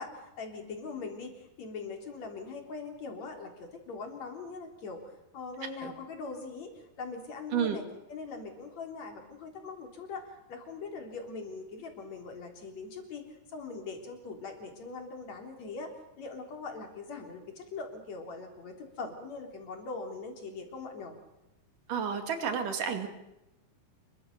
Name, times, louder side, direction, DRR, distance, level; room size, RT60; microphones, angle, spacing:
voice 1, 0.0-7.8 8.1-21.1, left 4 dB, 55° left, 3 dB, 4.7 m, -41 dB
voice 2, 21.9-23.1, right 7 dB, 70° right, 7 dB, 3.9 m, -31 dB
27.0 x 23.0 x 6.7 m, 0.90 s
omnidirectional pair, 3.9 m